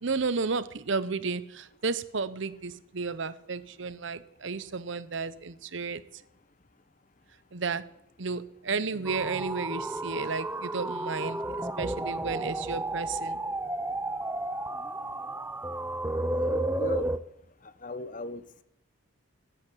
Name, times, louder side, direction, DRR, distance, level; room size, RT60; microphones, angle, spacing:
voice 1, 0.0-6.0 7.5-7.8 8.2-13.4, right 4 dB, 60° right, 15 dB, 0.8 m, -33 dB
sound 1, 9.1-17.2, right 2 dB, 10° right, 0.5 m, -32 dB
voice 2, 16.3-17.1 17.8-18.6, left 2 dB, 40° left, 13 dB, 0.7 m, -36 dB
14.5 x 8.9 x 8.3 m, 0.77 s
head